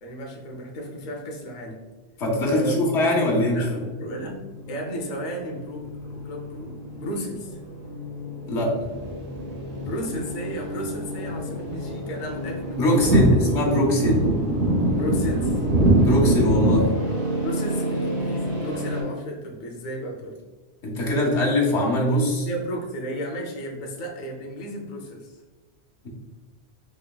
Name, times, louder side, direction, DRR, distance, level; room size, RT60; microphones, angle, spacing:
voice 1, 0.0-1.8 2.5-2.8 3.5-7.6 9.8-13.3 14.9-15.7 17.4-20.4 22.4-25.4, equal, 50° left, 0 dB, 0.7 m, -34 dB
voice 2, 2.2-3.7 8.5-8.8 12.8-14.2 16.0-17.0 20.8-22.5, left 1 dB, 80° left, -2 dB, 1.1 m, -22 dB
sound 1, 4.1-19.0, left 1 dB, 80° right, 1.8 m, -31 dB
sound 2, 8.8-11.1 11.4-16.8, right 1 dB, 60° right, 0.6 m, -22 dB
4.4 x 2.9 x 2.2 m, 1.3 s
omnidirectional pair, 1.1 m